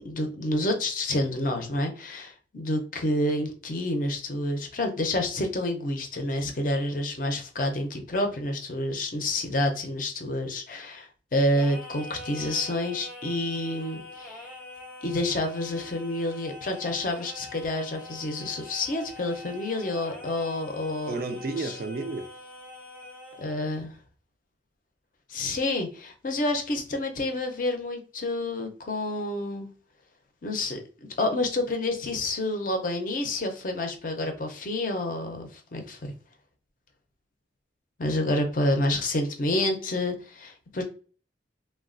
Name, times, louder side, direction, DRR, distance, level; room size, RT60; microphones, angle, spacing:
voice 1, 0.0-14.5 15.0-21.2 21.6-21.7 23.4-24.0 25.3-29.7 30.4-30.8 31.2-36.1 38.0-40.8, left 1 dB, 45° left, 0.5 m, -29 dB
Singing, 11.5-23.6, left 2 dB, 10° left, 0.7 m, -44 dB
voice 2, 21.1-22.3, right 3 dB, 50° right, 0.3 m, -32 dB
3.1 x 2.2 x 2.4 m
head